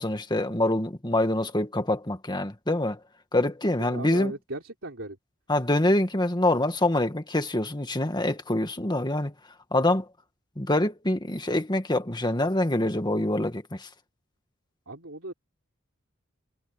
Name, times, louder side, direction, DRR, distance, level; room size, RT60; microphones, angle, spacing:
voice 1, 0.0-3.0 3.3-4.3 5.5-9.3 9.7-10.1 10.6-13.9, left 1 dB, 20° left, 1.9 m, -25 dB
voice 2, 3.8-5.2 14.9-15.3, right 2 dB, 70° right, 4.1 m, -37 dB
head